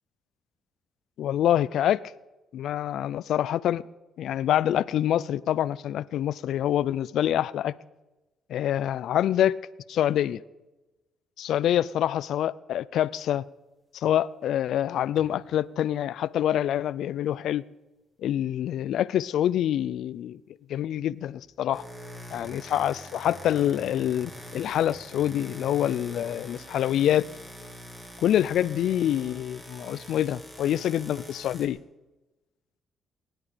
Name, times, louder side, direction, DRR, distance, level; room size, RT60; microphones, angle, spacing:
voice 1, 1.2-2.0 2.5-3.8 4.2-7.7 8.5-9.6 9.9-10.4 11.4-13.4 13.9-17.6 18.2-20.4 20.7-21.8 22.3-27.3 28.2-31.8, left 11 dB, 75° left, 0.4 m, -26 dB
sound 1, 15.2-15.4 21.5-31.7, equal, 15° right, 3.4 m, -44 dB
21.5 x 11.0 x 5.2 m
cardioid pair, 90°, 0 cm